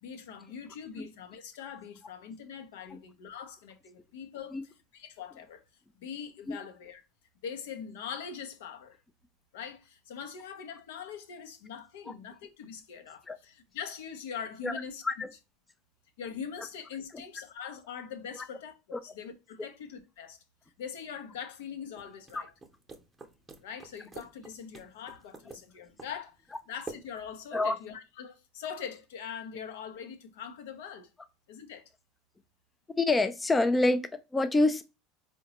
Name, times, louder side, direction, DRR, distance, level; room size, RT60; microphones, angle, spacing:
voice 1, 0.0-5.6 6.0-7.0 7.4-9.0 9.5-15.0 16.2-18.8 19.0-20.4 20.8-22.5 23.6-26.4 26.7-31.1 31.5-31.9, left 7 dB, 85° left, 0.6 m, -42 dB
sound 1, 22.0-27.4, right 4 dB, 15° right, 0.7 m, -49 dB
voice 2, 33.0-34.8, left 2 dB, 15° left, 0.3 m, -26 dB
3.8 x 2.2 x 2.8 m
supercardioid pair, 115°, 0 cm